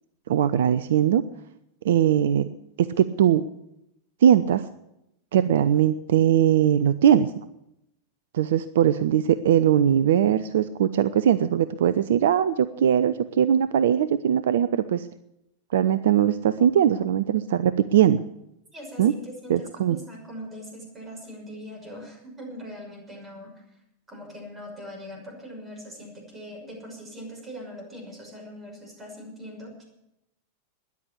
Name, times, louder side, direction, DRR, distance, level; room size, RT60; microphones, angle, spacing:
voice 1, 0.3-1.2 1.8-2.5 2.8-3.4 4.2-4.7 5.3-7.3 8.3-15.1 15.7-18.2 19.0-19.1 19.5-20.0, right 9 dB, 60° right, 13 dB, 0.5 m, -20 dB
voice 2, 18.7-23.5 24.1-29.9, equal, 15° right, 1 dB, 6.0 m, -41 dB
13.0 x 10.5 x 8.4 m, 0.84 s
figure-of-eight pair, 90°, 0 cm